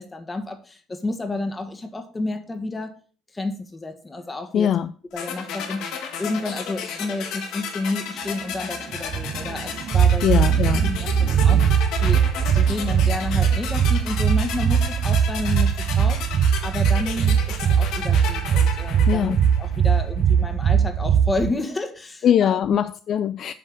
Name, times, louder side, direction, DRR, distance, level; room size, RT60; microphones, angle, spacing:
voice 1, 0.0-2.9 3.3-4.7 5.1-5.8 6.2-10.2 10.7-22.8, left 2 dB, 20° left, 1.4 m, -30 dB
voice 2, 4.5-4.9 10.2-10.9 19.1-19.4 22.2-23.5, left 9 dB, 55° left, 0.4 m, -21 dB
sound 1, 5.2-20.1, left 7 dB, 75° left, 1.5 m, -33 dB
sound 2, 8.9-21.5, right 8 dB, 50° right, 0.4 m, -20 dB
7.6 x 4.4 x 6.2 m
supercardioid pair, 85°, 0 cm